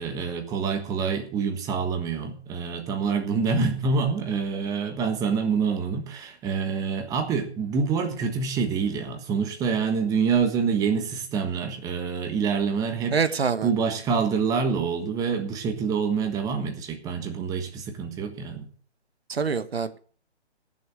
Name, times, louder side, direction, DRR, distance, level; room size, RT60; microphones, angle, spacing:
voice 1, 0.0-13.2 13.6-18.7, right 5 dB, 10° right, 6 dB, 1.4 m, -26 dB
voice 2, 13.1-13.7 19.3-20.0, right 5 dB, 65° right, 12 dB, 1.5 m, -25 dB
15.0 x 7.2 x 7.6 m, 0.43 s
figure-of-eight pair, 145°, 34 cm